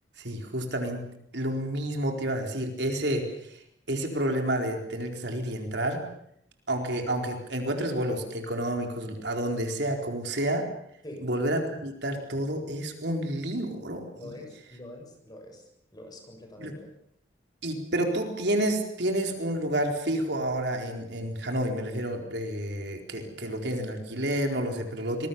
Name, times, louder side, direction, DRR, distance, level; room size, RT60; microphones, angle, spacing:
voice 1, 0.2-1.0 1.3-3.6 3.9-6.0 6.7-10.7 11.2-14.1 16.6-16.8 17.6-25.3, right 1 dB, 65° right, 4 dB, 4.4 m, -29 dB
voice 2, 14.2-16.9, left 1 dB, 20° left, 3 dB, 7.1 m, -45 dB
26.0 x 21.5 x 7.1 m, 0.70 s
head